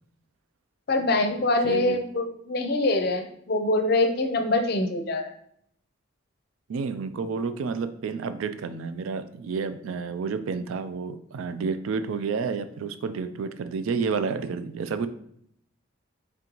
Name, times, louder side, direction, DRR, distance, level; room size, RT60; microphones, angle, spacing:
voice 1, 0.9-5.3, left 2 dB, 50° left, 5 dB, 0.5 m, -24 dB
voice 2, 1.6-2.0 6.7-15.1, right 5 dB, 80° right, 11 dB, 0.3 m, -30 dB
3.8 x 3.3 x 3.0 m, 0.70 s
head